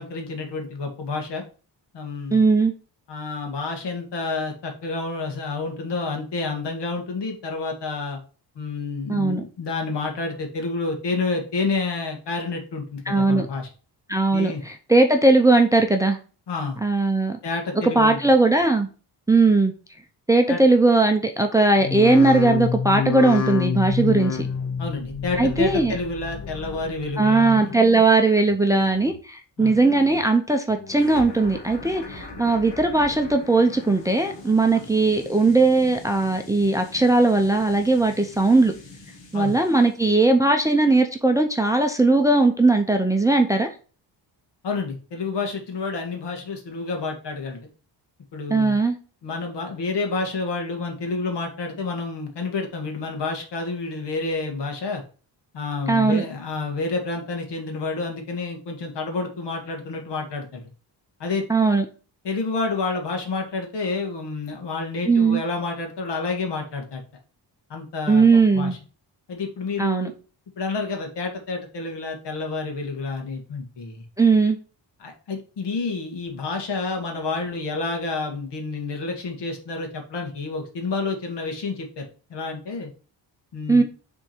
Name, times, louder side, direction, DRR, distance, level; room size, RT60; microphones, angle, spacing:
voice 1, 0.0-1.4 1.9-2.4 3.1-8.2 8.6-13.7 14.3-14.6 16.5-16.8 17.4-18.2 20.5-20.6 24.8-27.7 29.6-29.7 34.8-34.9 39.3-39.6 44.6-47.7 48.3-48.8 49.2-55.0 55.5-60.6 61.2-61.4 62.2-67.0 67.7-68.3 68.5-68.8 69.3-70.1 70.6-74.0 75.0-82.9 83.5-83.8, left 3 dB, 70° left, 3 dB, 1.7 m, -29 dB
voice 2, 2.3-2.7 9.1-9.4 13.1-13.5 14.1-16.2 16.8-17.4 18.0-18.9 19.3-19.7 20.3-24.5 25.4-25.9 27.2-38.7 39.3-43.7 48.5-49.0 55.9-56.2 61.5-61.8 65.1-65.4 68.1-68.8 69.8-70.1 74.2-74.6 83.7-83.8, right 3 dB, 10° right, 4 dB, 0.5 m, -19 dB
sound 1, 21.8-27.1 27.4-28.0 28.5-29.2 29.6-30.3 30.7-31.4 31.8-32.4 32.9-33.0, left 6 dB, 40° left, 0.7 m, -29 dB
sound 2, 30.9-40.1, left 2 dB, 90° left, 1.8 m, -41 dB
6.2 x 3.6 x 4.3 m, 0.36 s
wide cardioid pair, 140°, 43 cm